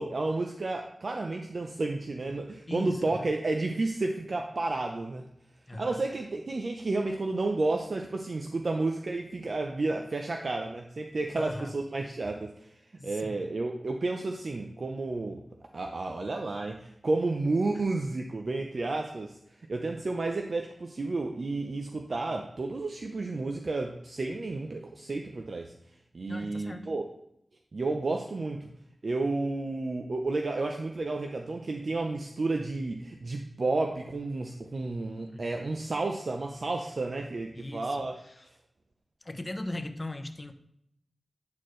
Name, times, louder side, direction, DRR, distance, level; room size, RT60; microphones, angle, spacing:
voice 1, 0.0-5.3 5.8-12.7 13.0-15.4 15.7-19.4 19.7-25.7 26.1-27.0 27.7-28.7 29.0-38.1, right 2 dB, 65° right, 3 dB, 0.5 m, -31 dB
voice 2, 2.7-3.3 5.7-6.0 11.3-11.8 13.0-13.5 26.3-26.9 35.3-35.6 37.5-38.5 39.2-40.5, left 1 dB, 30° left, 7 dB, 0.7 m, -39 dB
9.4 x 4.3 x 3.1 m, 0.74 s
cardioid pair, 50°, 0 cm